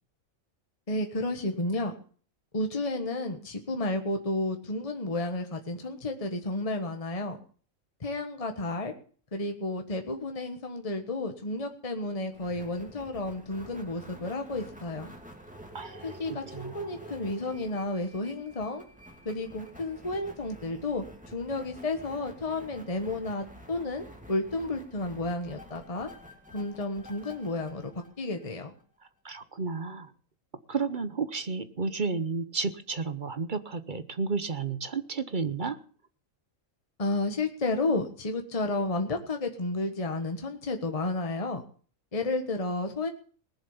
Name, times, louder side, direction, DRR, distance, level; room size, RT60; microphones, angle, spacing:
voice 1, 0.9-1.9 2.5-7.4 8.0-8.9 9.3-15.1 16.0-18.8 19.2-26.1 26.5-27.9 28.2-28.7 37.0-41.6 42.1-43.1, left 2 dB, 25° left, 5 dB, 1.4 m, -32 dB
sound 1, 12.3-28.8, right 1 dB, 5° right, 2.5 m, -49 dB
voice 2, 15.7-16.9 29.2-30.1 30.7-35.8, right 4 dB, 40° right, 12 dB, 1.0 m, -32 dB
19.5 x 7.3 x 7.2 m, 0.43 s
omnidirectional pair, 1.4 m